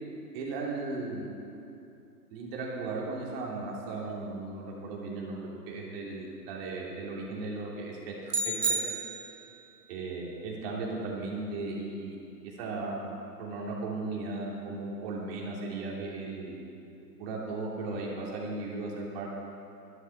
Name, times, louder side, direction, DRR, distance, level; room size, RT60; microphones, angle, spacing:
voice 1, 0.3-1.3 2.3-8.1 8.4-8.6 9.9-12.2 12.4-16.6 17.2-19.4, right 3 dB, 35° right, -3 dB, 3.2 m, -36 dB
sound 1, 8.3-9.6, right 3 dB, 75° right, 1.7 m, -31 dB
12.5 x 11.5 x 6.1 m, 2.7 s
figure-of-eight pair, 125°, 48 cm